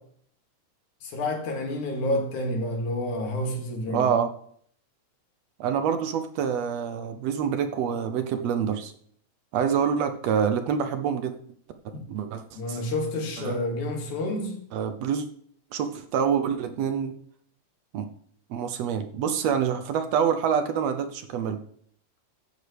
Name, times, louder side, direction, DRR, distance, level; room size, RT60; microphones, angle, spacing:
voice 1, 1.0-4.1 12.6-14.6, left 1 dB, 90° left, 3.5 m, -29 dB
voice 2, 3.9-4.3 5.6-8.9 9.5-11.3 12.1-12.4 12.7-12.8 13.4-13.6 14.7-15.3 15.7-17.2 17.9-18.1 18.5-21.6, right 7 dB, 75° right, 1.7 m, -26 dB
15.0 x 9.4 x 3.4 m
omnidirectional pair, 3.3 m